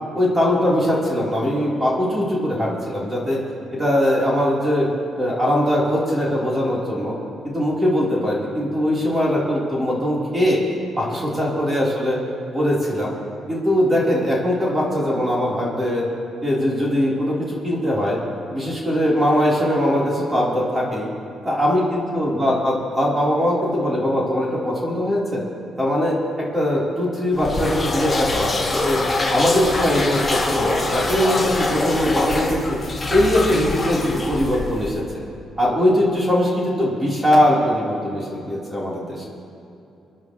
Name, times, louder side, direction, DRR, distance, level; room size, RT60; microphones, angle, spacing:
voice 1, 0.1-3.4 3.7-4.9 5.1-7.1 7.4-10.6 11.0-12.2 12.5-13.1 13.5-16.0 16.4-18.2 18.5-21.1 21.4-25.4 25.8-29.0 29.3-32.8 33.1-35.0 35.6-39.2, equal, 20° right, -5 dB, 3.9 m, -21 dB
sound 1, 27.4-35.0, left 2 dB, 20° left, 2.2 m, -24 dB
28.0 x 11.0 x 3.2 m, 2.8 s
cardioid pair, 90°, 0 cm